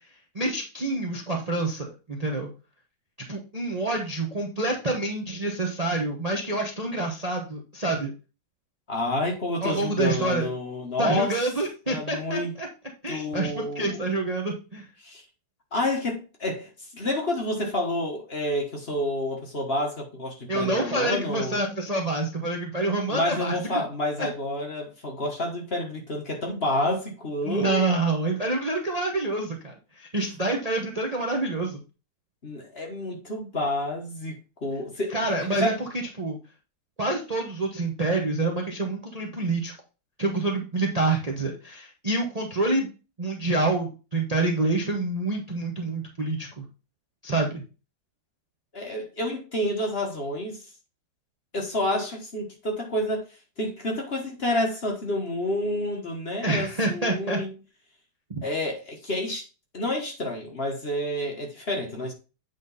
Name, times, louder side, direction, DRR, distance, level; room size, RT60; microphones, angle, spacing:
voice 1, 0.3-2.5 3.3-8.1 9.6-10.5 11.0-12.7 13.0-14.8 20.5-23.8 24.2-24.3 27.4-31.8 35.1-35.9 36.2-36.4 37.0-39.7 40.2-42.9 43.2-46.6 47.2-47.6 56.4-57.4 58.3-58.4, right 2 dB, 30° right, 0.9 m, -27 dB
voice 2, 8.9-11.4 11.9-12.5 13.1-14.0 15.0-15.2 15.7-21.6 23.1-27.8 32.4-35.7 48.7-50.6 51.5-53.3 53.6-57.6 58.4-59.5 59.7-62.1, left 1 dB, 35° left, 1.4 m, -29 dB
8.4 x 3.8 x 4.0 m
omnidirectional pair, 2.0 m